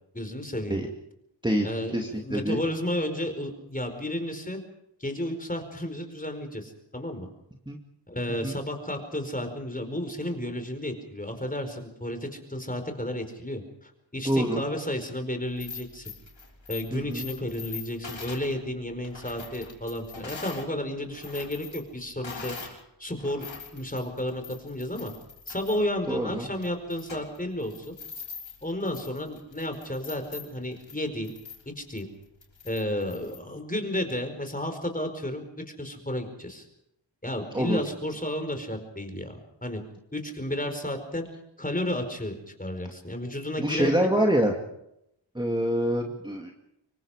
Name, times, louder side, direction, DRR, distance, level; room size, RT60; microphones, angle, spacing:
voice 1, 0.1-0.8 1.6-4.6 5.0-7.3 8.1-16.1 16.7-23.5 23.7-25.1 25.5-27.9 28.6-31.3 31.7-32.1 32.6-35.4 35.8-36.6 37.2-39.8 40.1-41.3 41.6-44.1, left 1 dB, 20° left, 6 dB, 4.8 m, -32 dB
voice 2, 1.9-2.6 7.7-7.8 8.4-8.5 14.2-14.7 16.9-17.3 26.1-26.5 37.5-37.8 43.6-44.5 45.3-46.5, equal, 10° right, 1 dB, 2.4 m, -25 dB
sound 1, 15.5-20.7 21.0-22.8 23.2-33.4, left 5 dB, 75° left, 6.0 m, -43 dB
26.0 x 23.5 x 5.0 m, 0.80 s
wide cardioid pair, 70°, 45 cm